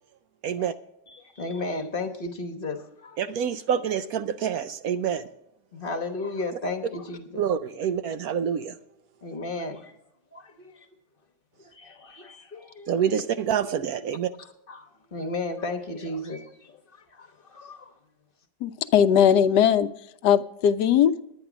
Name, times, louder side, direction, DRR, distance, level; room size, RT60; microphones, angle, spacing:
voice 1, 0.4-0.7 3.2-5.3 7.4-8.8 12.9-14.3, right 8 dB, 70° right, 0.9 m, -27 dB
voice 2, 1.1-3.2 5.7-7.5 9.2-9.9 10.3-10.9 11.6-13.0 14.4-17.9, left 2 dB, 35° left, 1.1 m, -34 dB
voice 3, 18.6-19.9 20.2-21.1, left 8 dB, 80° left, 1.1 m, -19 dB
10.0 x 9.6 x 6.0 m
omnidirectional pair, 1.8 m